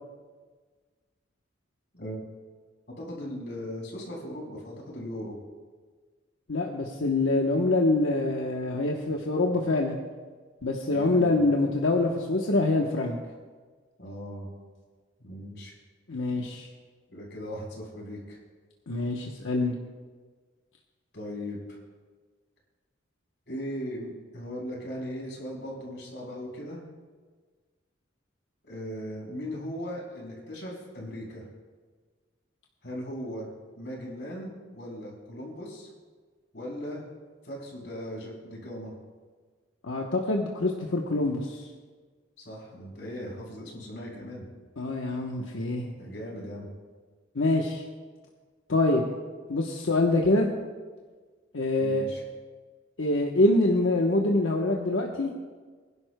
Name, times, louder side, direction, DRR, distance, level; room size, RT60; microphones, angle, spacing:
voice 1, 3.0-5.4 10.9-11.3 14.0-14.5 15.2-15.7 17.1-18.4 21.1-21.8 23.5-26.8 28.6-31.5 32.8-33.5 33.7-35.9 36.5-37.0 37.4-38.9 42.4-44.5 46.0-46.7 51.8-52.2, equal, 65° left, -2 dB, 4.2 m, -38 dB
voice 2, 6.5-10.0 10.6-13.2 16.1-16.7 18.9-19.7 39.8-41.6 44.8-45.9 47.3-47.8 48.7-49.0 49.5-50.5 51.5-52.0 53.0-55.3, left 2 dB, 90° left, 0 dB, 1.0 m, -25 dB
24.0 x 11.0 x 2.2 m, 1.5 s
head